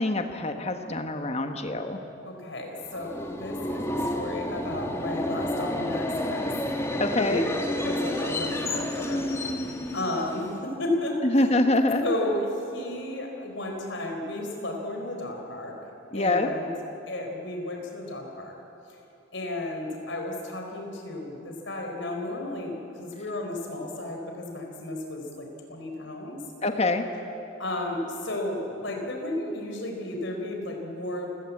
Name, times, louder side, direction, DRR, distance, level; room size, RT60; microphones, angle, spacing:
voice 1, 0.0-2.0 7.0-7.4 11.2-12.0 16.1-16.5 26.6-27.1, left 2 dB, 30° left, 6 dB, 1.4 m, -25 dB
voice 2, 2.2-6.5 7.2-9.2 9.9-11.6 12.0-15.7 16.1-16.7 17.1-18.5 19.3-26.4 27.6-31.3, left 1 dB, 60° left, 2 dB, 4.4 m, -33 dB
Subway metro underground, 2.9-10.6, left 1 dB, 15° left, 1.5 m, -30 dB
29.0 x 17.0 x 8.6 m, 2.9 s
head